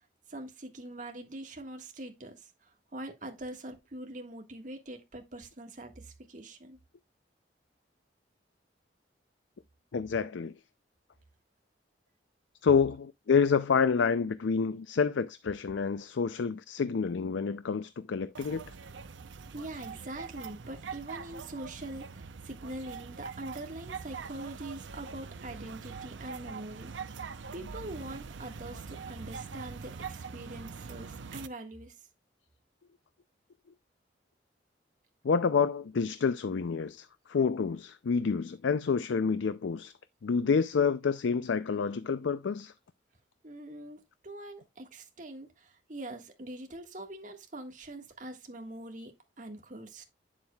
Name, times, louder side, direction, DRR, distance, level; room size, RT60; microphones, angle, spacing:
voice 1, 0.3-6.8 19.5-26.9 27.5-32.0 43.4-50.0, right 1 dB, 45° right, 1.6 m, -43 dB
voice 2, 9.9-10.5 12.6-18.6 35.2-39.9 40.2-42.7, left 5 dB, 90° left, 0.4 m, -28 dB
sound 1, 18.4-31.5, right 5 dB, 90° right, 0.6 m, -43 dB
8.9 x 7.4 x 2.3 m
head